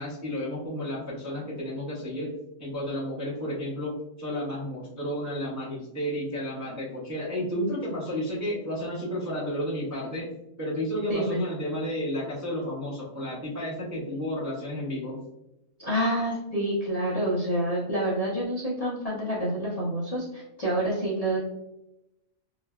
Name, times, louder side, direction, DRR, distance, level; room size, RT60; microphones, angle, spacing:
voice 1, 0.0-2.3 2.6-10.3 10.6-15.2, equal, 25° right, -7 dB, 0.3 m, -32 dB
voice 2, 15.8-21.4, right 1 dB, 50° left, -7 dB, 0.4 m, -28 dB
3.1 x 2.1 x 2.2 m, 0.86 s
omnidirectional pair, 1.4 m